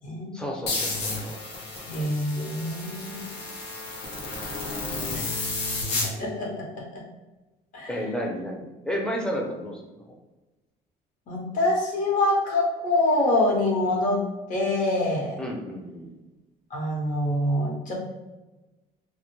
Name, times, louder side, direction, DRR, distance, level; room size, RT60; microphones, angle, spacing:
voice 1, 0.3-1.4 7.9-10.1 15.4-16.1, equal, 5° left, -1 dB, 0.5 m, -32 dB
sound 1, 0.7-6.1, left 3 dB, 80° left, 0.7 m, -31 dB
voice 2, 1.8-3.3 5.1-5.3 6.2-6.6 6.9-7.0 7.7-7.9 11.3-14.2 14.5-15.3 16.7-17.9, left 1 dB, 50° left, -2 dB, 0.9 m, -25 dB
2.1 x 2.1 x 3.0 m, 1.1 s
cardioid pair, 110°, 17 cm